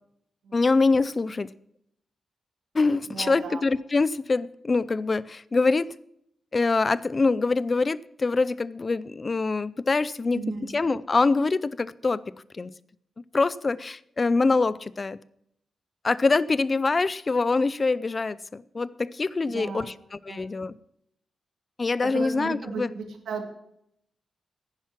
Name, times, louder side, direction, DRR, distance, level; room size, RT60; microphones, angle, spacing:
voice 1, 0.5-1.5 2.7-5.9 6.5-10.4 10.7-12.2 12.5-12.7 13.3-15.2 16.0-19.9 20.2-20.8 21.8-22.9, left 3 dB, 25° left, 0.4 m, -24 dB
voice 2, 3.1-3.6 10.3-10.7 19.5-20.0 20.3-20.5 22.0-23.5, right 5 dB, 80° right, 2.2 m, -35 dB
10.5 x 10.5 x 5.9 m
wide cardioid pair, 165°, 0 cm